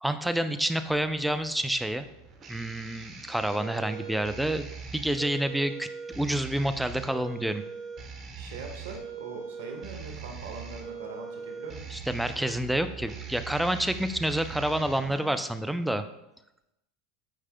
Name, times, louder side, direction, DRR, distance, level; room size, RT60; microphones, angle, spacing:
voice 1, 0.0-2.1 2.5-7.6 11.9-16.0, right 1 dB, 5° right, 10 dB, 0.4 m, -28 dB
sound 1, 0.9-15.4, right 6 dB, 40° right, 1.1 m, -41 dB
voice 2, 8.3-12.1, right 4 dB, 75° right, 3 dB, 1.2 m, -42 dB
8.9 x 4.8 x 2.2 m, 0.91 s
hypercardioid pair, 90°, 0 cm